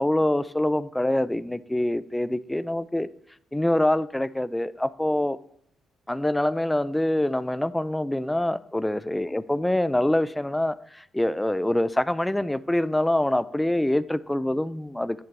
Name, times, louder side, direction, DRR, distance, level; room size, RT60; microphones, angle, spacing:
voice 1, 0.0-3.1 3.5-5.4 6.1-15.2, left 1 dB, 10° left, 17 dB, 0.4 m, -25 dB
10.5 x 7.1 x 3.3 m, 0.66 s
cardioid pair, 90°, 0 cm